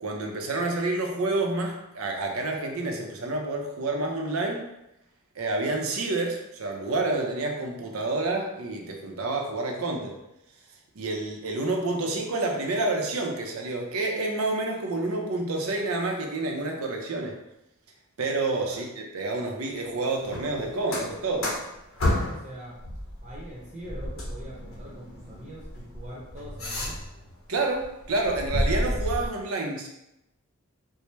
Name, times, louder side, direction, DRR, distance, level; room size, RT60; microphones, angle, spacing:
voice 1, 0.0-4.6 5.4-10.2 10.9-17.4 18.2-21.6 27.5-29.9, right 2 dB, 80° right, 1 dB, 0.7 m, -29 dB
sound 1, 20.2-22.5 22.8-27.3 27.7-29.3, left 1 dB, 75° left, 1.0 m, -31 dB
voice 2, 22.2-22.8 23.2-27.0, equal, 35° right, -5 dB, 0.8 m, -43 dB
4.3 x 2.1 x 3.2 m, 0.88 s
head